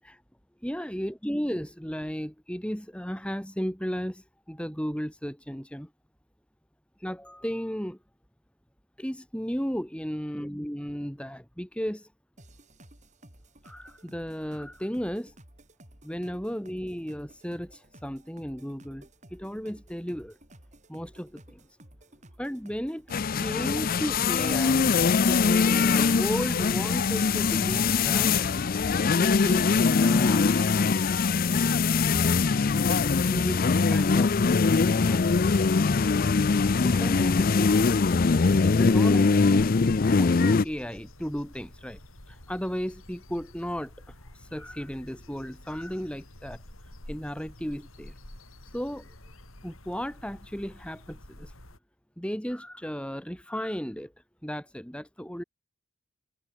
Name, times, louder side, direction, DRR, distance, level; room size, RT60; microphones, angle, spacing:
voice 1, 0.6-5.9 7.0-8.0 9.0-12.1 13.6-15.3 16.0-20.4 20.9-21.6 22.4-28.3 29.1-30.6 33.1-34.4 35.0-35.3 36.7-37.9 38.6-42.0 42.3-43.9 44.3-46.6 47.1-48.1 48.7-49.2 49.6-51.5 52.2-54.1 54.4-55.4, equal, 5° left, 3.7 m, -34 dB
sound 1, 12.4-26.1, right 1 dB, 35° right, 7.7 m, -54 dB
sound 2, 23.1-40.6, left 4 dB, 45° left, 0.5 m, -22 dB
sound 3, 38.5-51.8, left 1 dB, 90° left, 6.4 m, -48 dB
head